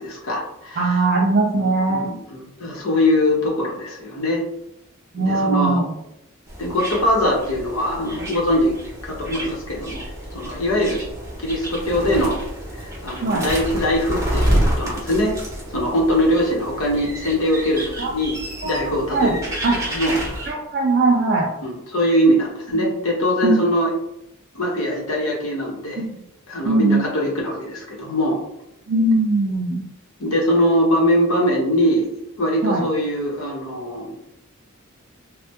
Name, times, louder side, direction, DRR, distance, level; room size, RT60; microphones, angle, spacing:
voice 1, 0.0-0.9 1.6-4.4 5.2-5.8 6.6-8.7 9.0-10.1 10.3-11.0 11.4-12.4 12.7-15.4 15.7-19.6 19.9-20.2 21.6-23.9 24.5-26.0 26.5-28.4 30.2-32.1 32.4-34.2, equal, 75° left, -2 dB, 0.9 m, -22 dB
voice 2, 0.8-2.1 5.1-5.9 13.2-13.5 18.0-18.1 18.6-19.3 19.6-19.8 20.5-21.5 22.7-22.9 23.4-23.6 26.0-26.2 26.6-27.0 28.9-29.9 32.6-32.9, right 2 dB, 45° right, -2 dB, 0.4 m, -20 dB
sound 1, 6.5-20.5, equal, 15° right, 0.7 m, -29 dB
3.2 x 2.1 x 2.7 m, 0.83 s
head